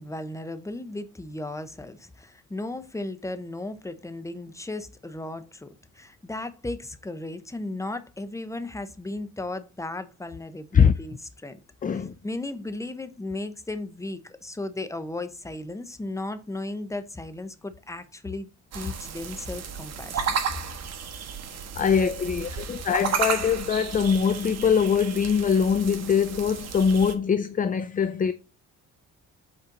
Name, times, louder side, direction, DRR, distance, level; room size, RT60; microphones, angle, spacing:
voice 1, 0.0-18.5 18.7-20.4, left 2 dB, 10° left, 0.9 m, -35 dB
voice 2, 11.8-12.1 21.8-28.3, left 6 dB, 30° left, 0.5 m, -22 dB
sound 1, 18.7-27.2, right 7 dB, 60° right, 1.3 m, -33 dB
5.7 x 4.3 x 5.3 m
cardioid pair, 90°, 30 cm